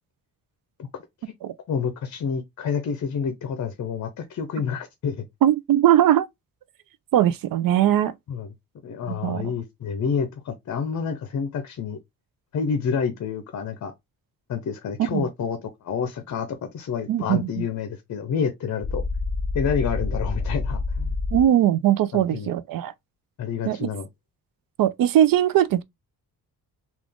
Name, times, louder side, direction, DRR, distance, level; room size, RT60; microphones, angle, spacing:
voice 1, 1.7-5.3 8.3-8.5 8.8-12.0 12.5-13.9 14.5-19.0 19.5-21.2 22.1-22.5 23.4-24.1, left 6 dB, 50° left, 0.7 m, -28 dB
voice 2, 5.4-6.3 7.1-8.1 9.1-9.5 15.1-15.3 17.1-17.5 21.3-22.9 23.6-23.9 24.8-25.8, right 11 dB, 70° right, 0.5 m, -20 dB
sound 1, 18.8-21.4, left 3 dB, 15° left, 0.4 m, -27 dB
3.7 x 2.4 x 3.4 m
cardioid pair, 130°, 36 cm